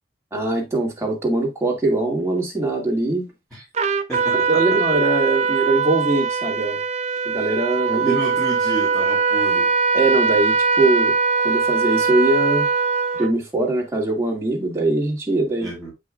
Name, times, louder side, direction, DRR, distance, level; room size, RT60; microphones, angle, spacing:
voice 1, 0.3-3.3 4.3-6.8 7.2-8.2 9.9-11.1 11.4-12.7 13.1-15.7, right 2 dB, 15° right, 2.2 m, -22 dB
Trumpet, 3.7-13.3, right 5 dB, 35° right, 0.5 m, -21 dB
voice 2, 4.1-4.8 7.4-7.6 8.0-9.7 15.6-15.9, right 2 dB, 5° left, 2.6 m, -30 dB
7.7 x 5.4 x 2.4 m
head